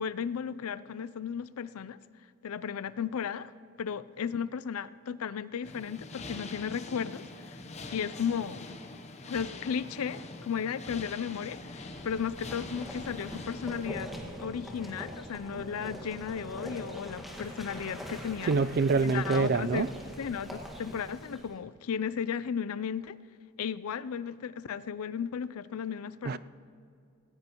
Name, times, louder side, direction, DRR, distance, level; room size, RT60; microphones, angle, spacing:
voice 1, 0.0-2.0 2.4-3.5 3.8-7.6 7.9-8.7 9.3-14.1 14.4-18.5 19.0-19.8 20.2-23.2 23.6-26.4, left 7 dB, 75° left, 0.4 m, -35 dB
sound 1, 5.6-13.9, left 3 dB, 30° left, 0.8 m, -44 dB
sound 2, 11.6-21.5, equal, ahead, 1.7 m, -43 dB
voice 2, 18.4-19.9 26.2-26.4, right 4 dB, 45° right, 0.4 m, -26 dB
18.5 x 17.5 x 3.0 m
head